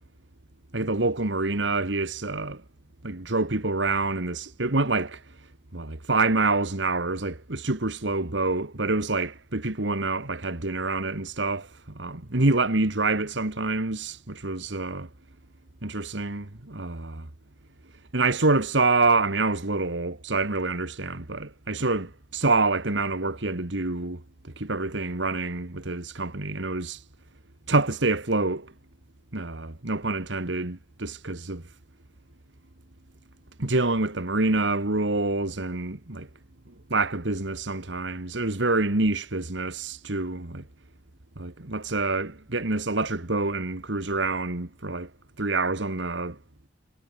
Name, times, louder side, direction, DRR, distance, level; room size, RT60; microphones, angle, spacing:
voice 1, 0.7-2.6 3.0-5.2 5.7-11.7 12.0-15.1 15.8-17.3 18.1-24.2 24.6-27.0 27.7-28.7 29.3-31.6 33.6-36.3 36.9-40.6 41.4-45.1 45.4-46.4, right 3 dB, 75° right, 1.9 m, -26 dB
head